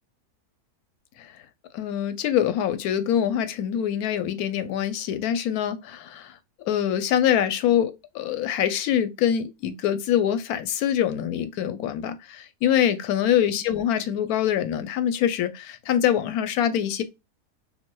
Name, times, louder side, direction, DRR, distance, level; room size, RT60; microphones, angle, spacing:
voice 1, 1.7-6.3 6.7-17.0, left 10 dB, 80° left, 1.1 m, -24 dB
6.0 x 2.1 x 2.2 m
omnidirectional pair, 1.6 m